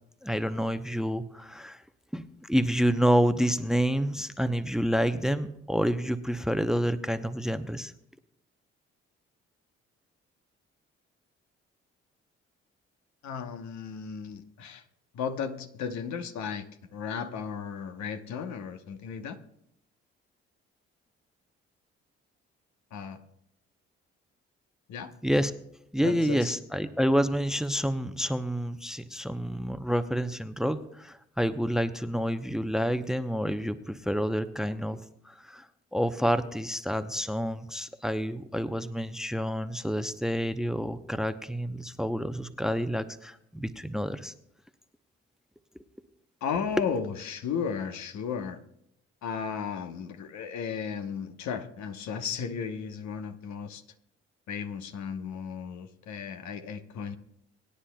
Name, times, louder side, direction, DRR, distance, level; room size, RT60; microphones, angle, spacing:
voice 1, 0.2-1.8 2.1-7.9 25.2-25.5 25.9-35.7 35.9-44.3, equal, ahead, 0.8 m, -28 dB
voice 2, 13.2-14.8 15.1-19.4 22.9-23.2 24.9-25.1 26.0-26.6 46.4-48.6 49.2-53.8 54.5-57.2, left 6 dB, 65° left, 1.1 m, -35 dB
23.0 x 9.8 x 2.3 m
hypercardioid pair, 50°, 30 cm